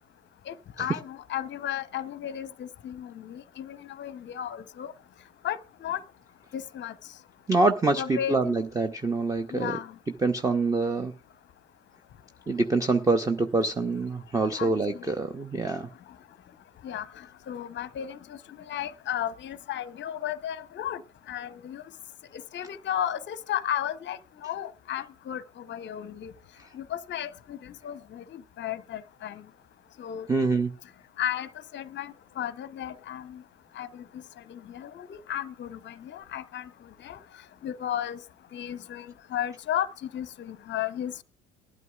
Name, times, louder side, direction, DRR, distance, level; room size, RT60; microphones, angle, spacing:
voice 1, 0.5-4.9 5.4-6.0 6.5-6.9 8.0-8.5 9.5-9.9 14.6-15.1 16.8-21.0 21.3-21.8 22.3-26.3 26.7-29.4 30.0-30.3 31.2-33.4 33.7-34.2 34.5-36.7 37.0-37.2 37.6-38.2 38.5-39.9 40.1-41.2, left 10 dB, 30° left, 15 dB, 0.8 m, -34 dB
voice 2, 7.5-9.8 10.2-11.1 12.5-15.9 30.3-30.7, right 3 dB, 10° right, 8 dB, 0.7 m, -25 dB
19.0 x 12.0 x 2.4 m, 0.34 s
figure-of-eight pair, 65°, 39 cm